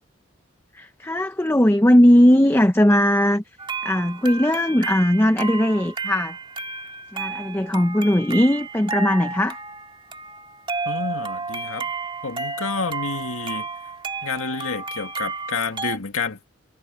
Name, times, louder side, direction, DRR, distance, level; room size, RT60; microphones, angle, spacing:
voice 1, 0.7-3.4 3.8-6.4 7.1-9.6, equal, 10° left, 0.6 m, -18 dB
sound 1, 3.6-16.0, right 4 dB, 25° right, 2.0 m, -32 dB
voice 2, 10.9-11.9 12.2-13.7 14.2-16.4, left 4 dB, 90° left, 2.1 m, -29 dB
head